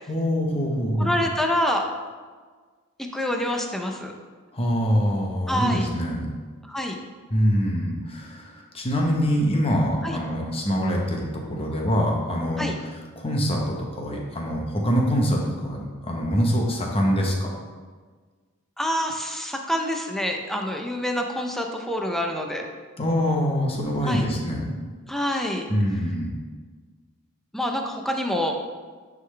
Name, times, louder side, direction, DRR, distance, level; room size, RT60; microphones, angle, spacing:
voice 1, 0.1-1.1 4.5-6.3 7.3-12.6 13.2-17.5 23.0-24.7 25.7-26.3, equal, 25° left, 0 dB, 0.9 m, -24 dB
voice 2, 1.0-1.9 3.1-4.1 5.5-5.9 6.7-7.0 10.0-10.2 12.6-12.8 18.8-22.7 24.0-24.2 25.1-25.6 27.5-28.5, left 1 dB, ahead, 2 dB, 0.5 m, -26 dB
9.6 x 3.8 x 3.2 m, 1.5 s
head